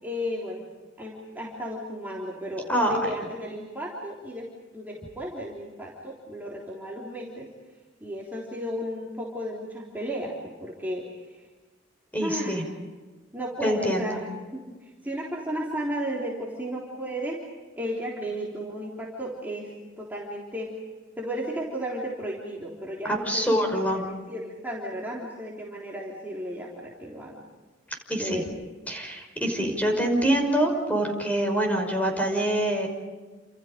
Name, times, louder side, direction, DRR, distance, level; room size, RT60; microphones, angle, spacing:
voice 1, 0.0-0.7 1.0-7.5 8.0-11.4 12.2-12.7 13.3-17.4 17.8-19.7 20.0-20.7 21.2-27.4 28.2-28.6, equal, 10° right, -5 dB, 3.8 m, -34 dB
voice 2, 12.1-12.6 13.6-14.2 23.0-24.0 28.1-28.4 28.9-32.9, right 1 dB, 10° left, 3 dB, 5.8 m, -25 dB
30.0 x 28.0 x 5.3 m, 1.3 s
head